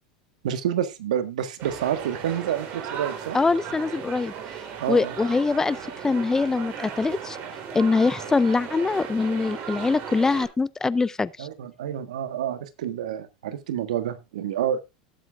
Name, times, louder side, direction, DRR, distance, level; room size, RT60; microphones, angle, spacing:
voice 1, 0.4-3.4 4.8-5.1 11.4-14.8, right 10 dB, 80° right, 1.6 m, -28 dB
sound 1, 1.6-10.5, right 7 dB, 45° right, 3.4 m, -36 dB
voice 2, 3.3-4.3 4.9-5.8 6.0-7.4 7.7-11.5, left 4 dB, 15° left, 0.5 m, -23 dB
18.5 x 7.9 x 2.5 m
hypercardioid pair, 100°, 4 cm